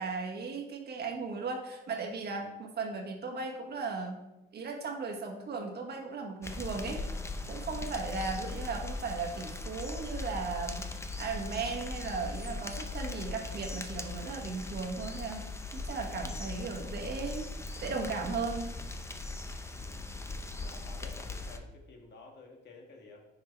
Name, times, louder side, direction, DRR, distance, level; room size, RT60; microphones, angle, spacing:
voice 1, 0.0-4.2 4.5-7.0 7.5-10.8 11.2-15.4 15.7-17.5 17.8-18.7, right 4 dB, 55° right, 1 dB, 1.3 m, -36 dB
sound 1, 6.4-21.6, left 3 dB, 15° left, 0.6 m, -39 dB
voice 2, 20.6-23.2, left 3 dB, 60° left, 2 dB, 1.4 m, -53 dB
5.8 x 4.7 x 4.6 m, 0.96 s
cardioid pair, 90°, 20 cm